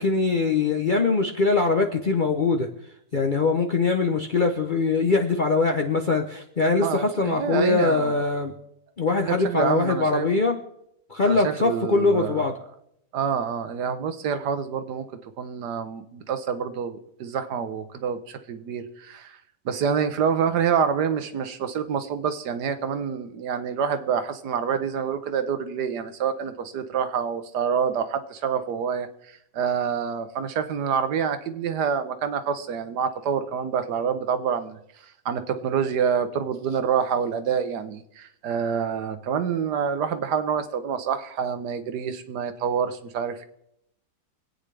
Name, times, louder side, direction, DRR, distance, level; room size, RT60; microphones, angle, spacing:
voice 1, 0.0-2.7 3.1-8.5 9.0-10.6 11.1-12.5, left 3 dB, 45° left, 3 dB, 0.7 m, -22 dB
voice 2, 6.8-8.2 9.3-10.3 11.2-12.4 13.1-15.1 15.4-19.4 19.6-43.4, right 7 dB, 75° right, 10 dB, 1.4 m, -27 dB
25.0 x 8.8 x 3.3 m, 0.78 s
omnidirectional pair, 1.8 m